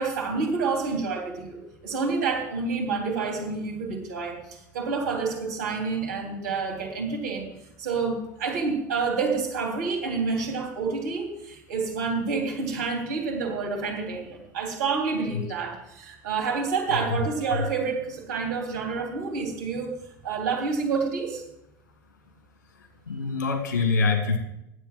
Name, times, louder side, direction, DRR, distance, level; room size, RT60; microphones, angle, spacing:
voice 1, 0.0-7.5 7.8-19.9 20.2-21.4, right 4 dB, 65° right, 0 dB, 3.2 m, -28 dB
voice 2, 23.1-24.4, left 4 dB, 75° left, 5 dB, 2.1 m, -25 dB
9.9 x 8.0 x 7.7 m, 0.85 s
figure-of-eight pair, 75°, 10 cm